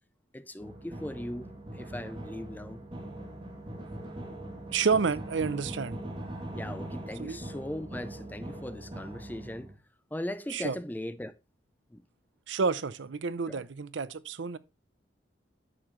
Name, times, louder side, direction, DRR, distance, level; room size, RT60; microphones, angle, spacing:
voice 1, 0.3-2.8 6.6-9.7 10.1-11.3 11.9-12.0 13.5-13.7, left 1 dB, 10° left, 0.5 m, -39 dB
sound 1, 0.6-9.7, right 1 dB, 30° right, 2.3 m, -41 dB
voice 2, 4.7-6.0 7.2-7.4 10.5-10.8 12.5-14.6, right 5 dB, 80° right, 0.6 m, -29 dB
9.9 x 6.7 x 3.0 m
head